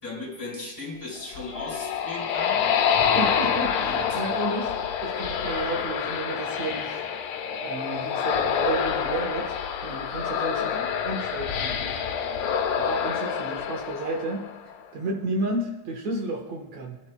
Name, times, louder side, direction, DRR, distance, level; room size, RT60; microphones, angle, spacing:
voice 1, 0.0-2.6 4.1-4.2 10.6-10.9, left 2 dB, 10° left, -3 dB, 4.5 m, -37 dB
sound 1, 1.2-14.7, left 7 dB, 75° left, 2.1 m, -27 dB
voice 2, 2.9-7.0 7.6-9.6 9.8-10.7 11.0-12.0 12.8-14.5 14.9-17.0, right 2 dB, 65° right, 1 dB, 2.5 m, -32 dB
24.0 x 12.0 x 2.3 m, 1.0 s
omnidirectional pair, 3.5 m